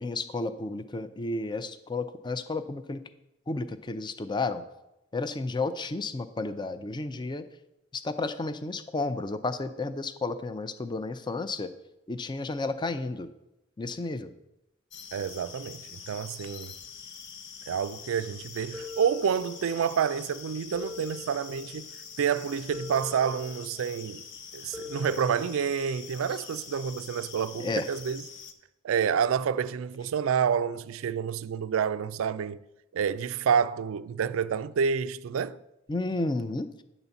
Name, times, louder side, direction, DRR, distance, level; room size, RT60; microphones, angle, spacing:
voice 1, 0.0-3.0 3.5-4.6 5.1-7.4 7.9-11.7 12.1-13.3 13.8-14.3 27.6-27.9 35.9-36.7, left 3 dB, 20° left, 0.4 m, -32 dB
sound 1, 14.9-28.5, left 7 dB, 60° left, 0.7 m, -45 dB
voice 2, 15.1-16.7 17.7-21.9 22.2-24.2 24.5-28.3 28.8-32.6 32.9-35.6, right 7 dB, 75° right, 0.3 m, -28 dB
UI Seatbelt signal similar(Sytrus Eq chrs flngr xctr rvrb), 18.7-19.9 20.7-21.9 22.7-23.9 24.7-25.9, left 3 dB, 5° right, 0.9 m, -43 dB
9.8 x 4.0 x 7.0 m
head